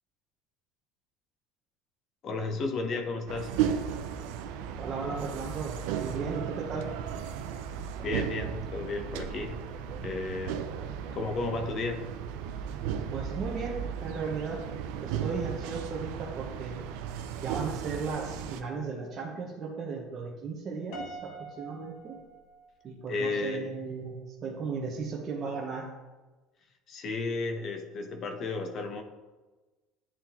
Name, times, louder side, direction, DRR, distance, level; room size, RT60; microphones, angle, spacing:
voice 1, 2.2-3.5 8.0-9.6 9.9-10.6 11.1-12.0 23.1-23.7 26.9-29.0, left 3 dB, 45° left, 5 dB, 0.9 m, -33 dB
sound 1, 3.3-18.6, right 8 dB, 75° right, 0.5 m, -35 dB
voice 2, 4.8-7.3 13.1-14.7 15.0-16.8 17.4-22.2 22.8-25.9, right 4 dB, 35° right, -3 dB, 1.0 m, -36 dB
Piano, 20.9-23.2, right 2 dB, 70° left, 1.1 m, -45 dB
10.0 x 3.7 x 2.9 m, 1.2 s
supercardioid pair, 125°, 0 cm